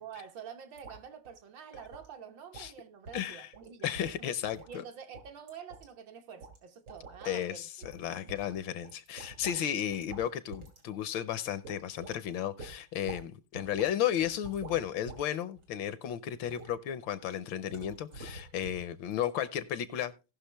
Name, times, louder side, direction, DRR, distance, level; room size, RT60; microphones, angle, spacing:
voice 1, 0.0-4.3 4.7-7.9 8.2-8.3, right 7 dB, 65° right, 1.7 m, -48 dB
sound 1, 0.8-1.0 1.3-1.4 1.7-2.1 2.5-2.7 3.1-3.3 3.5-3.7 3.9-4.8 5.1-5.9 6.4-6.6 6.9-7.3 7.8-8.0 8.3-9.7 9.9-10.3 10.5-10.8 11.1-11.2 11.6-12.2 12.6-13.2 13.5-13.9 14.2-15.2 15.6-15.9 16.4-16.7 17.7-18.9 19.1-19.2, right 3 dB, 90° right, 3.3 m, -47 dB
voice 2, 3.1-3.5 3.8-4.8 7.2-20.1, left 10 dB, 70° left, 1.3 m, -34 dB
17.5 x 6.0 x 3.3 m
omnidirectional pair, 2.3 m